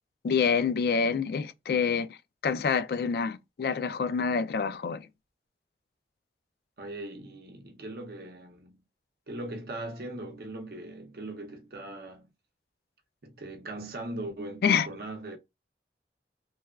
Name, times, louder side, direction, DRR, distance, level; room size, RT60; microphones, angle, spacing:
voice 1, 0.2-2.2 2.4-5.1 14.6-14.9, left 6 dB, 60° left, 0.3 m, -27 dB
voice 2, 6.8-8.8 9.3-12.3 13.2-15.4, right 1 dB, 60° right, 0.6 m, -40 dB
3.1 x 2.2 x 2.3 m
head